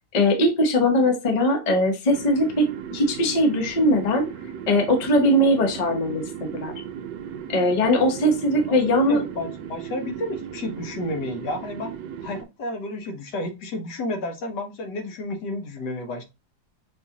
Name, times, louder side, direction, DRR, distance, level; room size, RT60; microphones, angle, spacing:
voice 1, 0.1-4.3 4.7-6.7 7.5-9.2, left 1 dB, 35° left, 4 dB, 0.6 m, -20 dB
sound 1, 2.1-12.4, right 8 dB, 80° right, 1.2 m, -36 dB
voice 2, 9.1-11.9 12.2-16.2, left 1 dB, 70° left, 4 dB, 1.4 m, -31 dB
5.6 x 2.4 x 2.8 m, 0.26 s
omnidirectional pair, 1.9 m